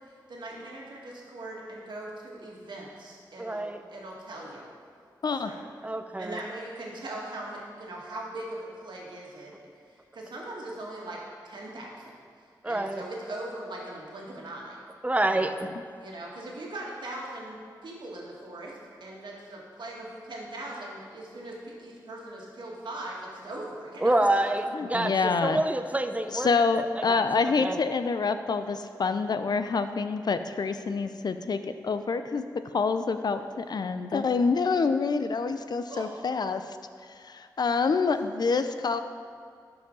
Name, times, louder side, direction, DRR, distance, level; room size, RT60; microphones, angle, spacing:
voice 1, 0.1-4.7 5.4-5.6 6.2-9.5 10.1-11.2 11.4-12.1 12.7-14.8 15.3-15.5 16.0-17.6 17.8-24.5 25.1-25.3 35.9-36.1, right 1 dB, 70° right, -3 dB, 1.8 m, -40 dB
voice 2, 3.4-3.8 5.8-6.4 12.6-13.0 15.0-15.7 24.0-26.5 27.1-27.2 27.6-27.8, right 1 dB, 15° right, 8 dB, 0.6 m, -27 dB
voice 3, 24.7-25.6 26.3-32.4 32.7-36.8 37.1-39.0, left 4 dB, 60° left, 10 dB, 0.5 m, -27 dB
12.0 x 4.9 x 3.9 m, 2.3 s
cardioid pair, 50°, 8 cm